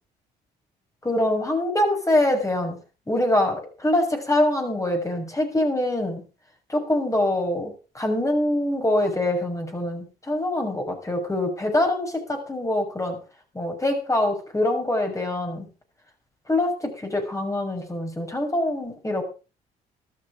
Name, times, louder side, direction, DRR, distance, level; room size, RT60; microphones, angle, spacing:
voice 1, 1.0-2.8 3.1-6.2 6.7-13.2 13.5-15.7 16.5-19.2, left 1 dB, 15° left, 4 dB, 6.6 m, -24 dB
14.0 x 12.5 x 5.0 m, 0.34 s
hypercardioid pair, 55°, 19 cm